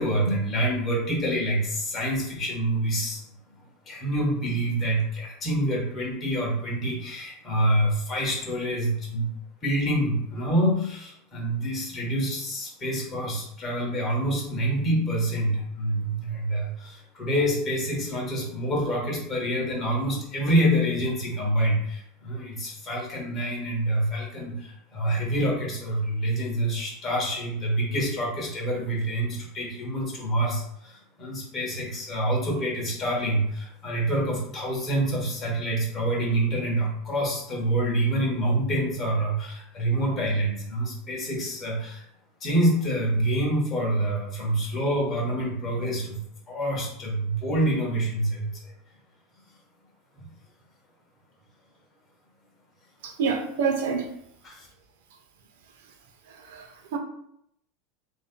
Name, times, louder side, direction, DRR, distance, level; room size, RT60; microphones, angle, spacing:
voice 1, 0.0-3.2 3.9-9.3 9.6-42.0 42.4-46.2 46.5-48.7 50.2-50.3 54.4-54.7, right 1 dB, 20° left, 1.1 m, -27 dB
voice 2, 53.0-54.1 56.5-57.0, right 5 dB, 70° right, 0.7 m, -27 dB
7.0 x 2.7 x 2.2 m
supercardioid pair, 180°, 0 cm